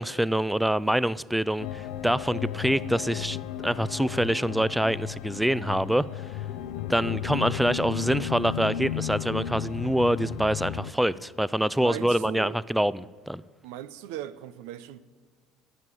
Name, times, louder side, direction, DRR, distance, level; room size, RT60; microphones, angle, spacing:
voice 1, 0.0-3.4 3.6-6.4 6.9-13.4, right 1 dB, 5° right, 0.3 m, -26 dB
sound 1, 1.6-10.9, left 11 dB, 85° left, 0.5 m, -34 dB
voice 2, 11.8-12.6 13.6-15.0, right 12 dB, 85° right, 0.6 m, -38 dB
10.5 x 9.6 x 9.2 m
supercardioid pair, 90°, 0 cm